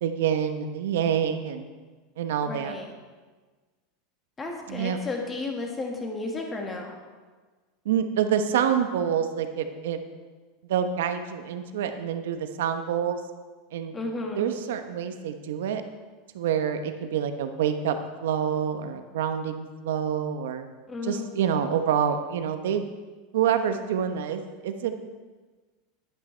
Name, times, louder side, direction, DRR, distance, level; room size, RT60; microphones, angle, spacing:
voice 1, 0.0-1.7 2.2-2.8 4.7-5.0 7.8-10.0 10.7-13.2 13.7-13.9 14.4-15.8 16.3-18.0 18.2-20.7 21.0-22.9 23.3-25.0, right 8 dB, 90° right, 7 dB, 1.0 m, -27 dB
voice 2, 2.5-2.9 4.4-7.0 13.9-14.5 20.9-21.3, left 3 dB, 15° left, 1 dB, 1.6 m, -33 dB
11.0 x 9.1 x 4.5 m, 1.4 s
supercardioid pair, 150°, 0 cm